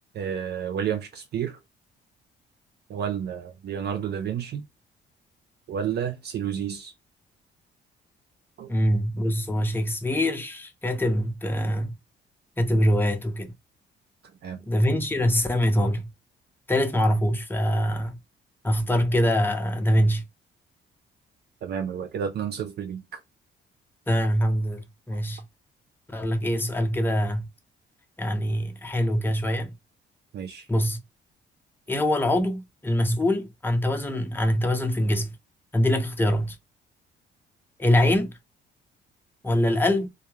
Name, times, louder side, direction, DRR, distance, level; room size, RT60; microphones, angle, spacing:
voice 1, 0.1-1.6 2.9-4.6 5.7-6.9 8.6-8.7 14.4-14.7 21.6-23.2 30.3-30.7, right 8 dB, 55° right, 0.4 m, -31 dB
voice 2, 8.7-12.0 12.6-13.5 14.7-16.1 16.7-18.2 18.6-20.2 24.1-25.5 26.1-27.5 28.2-29.7 30.7-31.0 31.9-35.4 35.7-36.6 37.8-38.3 39.4-40.1, equal, 10° left, 0.6 m, -24 dB
2.3 x 2.2 x 3.0 m
cardioid pair, 90°, 20 cm